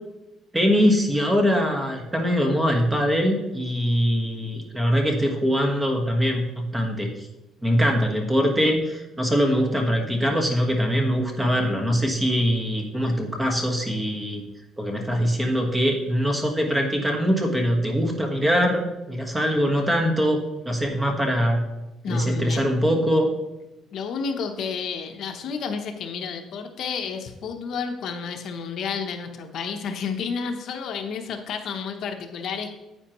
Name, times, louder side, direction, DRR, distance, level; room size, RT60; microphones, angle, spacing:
voice 1, 0.5-7.3 7.6-14.4 14.8-18.8 19.1-21.6 22.1-23.3, equal, 10° right, 2 dB, 1.3 m, -22 dB
voice 2, 22.0-22.7 23.9-32.7, left 6 dB, 60° left, 6 dB, 0.8 m, -31 dB
9.8 x 8.4 x 3.0 m, 0.99 s
cardioid pair, 145°, 0 cm